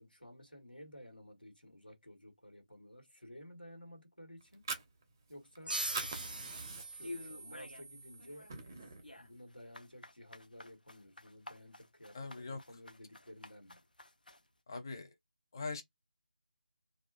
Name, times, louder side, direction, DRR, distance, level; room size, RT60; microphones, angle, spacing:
voice 1, 0.0-4.7 5.3-5.8 6.5-13.8, equal, 90° left, 1.4 m, -54 dB
Fire, 4.4-5.6 5.8-7.2 7.6-7.7 8.1-9.1, right 4 dB, 20° right, 0.4 m, -42 dB
sound 1, 5.7-6.7 7.0-7.9 8.2-14.5, left 2 dB, 70° left, 0.7 m, -51 dB
sound 2, 5.7-8.9, right 2 dB, 75° right, 0.5 m, -43 dB
voice 2, 12.1-12.6 14.7-15.1 15.5-15.8, left 3 dB, 25° left, 0.6 m, -41 dB
2.4 x 2.3 x 2.5 m
figure-of-eight pair, 160°, 5 cm